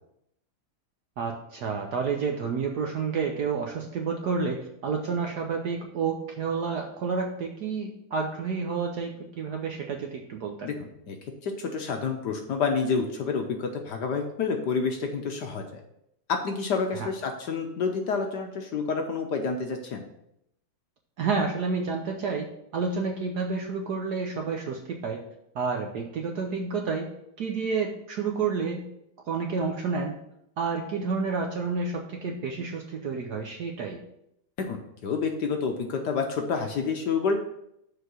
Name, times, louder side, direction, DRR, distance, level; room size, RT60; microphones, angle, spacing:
voice 1, 1.2-10.7 16.9-17.1 21.2-25.2 25.5-27.1 27.4-28.9 29.2-30.2 30.6-34.0, right 5 dB, 65° right, 2 dB, 1.0 m, -30 dB
voice 2, 10.6-11.2 11.4-15.6 16.3-20.0 34.6-37.3, left 5 dB, 60° left, 4 dB, 1.2 m, -29 dB
6.8 x 4.6 x 6.2 m, 0.78 s
omnidirectional pair, 2.4 m